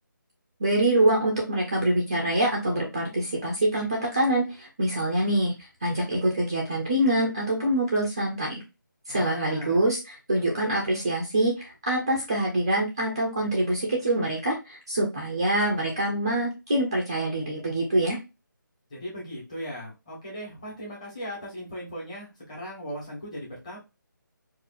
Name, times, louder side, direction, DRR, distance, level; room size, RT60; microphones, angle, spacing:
voice 1, 0.6-5.5 5.8-8.6 9.1-18.2, right 1 dB, 15° right, -1 dB, 0.4 m, -25 dB
voice 2, 9.1-9.8 18.9-23.8, equal, 20° left, -6 dB, 1.3 m, -38 dB
4.4 x 2.4 x 2.4 m, 0.27 s
figure-of-eight pair, 175°, 11 cm